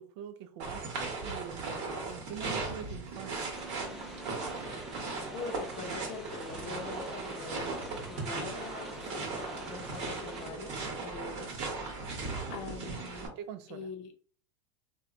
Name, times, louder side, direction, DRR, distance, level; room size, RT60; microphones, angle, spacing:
voice 1, 0.0-1.7 2.1-3.7 13.4-13.9, right 9 dB, 65° right, 0.4 m, -44 dB
sound 1, 0.6-13.3, right 3 dB, 50° right, 1.0 m, -38 dB
sound 2, 3.5-10.5, right 1 dB, ahead, 0.4 m, -46 dB
voice 2, 5.3-7.7 8.1-11.6 12.5-13.3 13.7-14.1, left 4 dB, 50° left, 0.6 m, -43 dB
2.8 x 2.2 x 2.5 m
supercardioid pair, 135°, 15 cm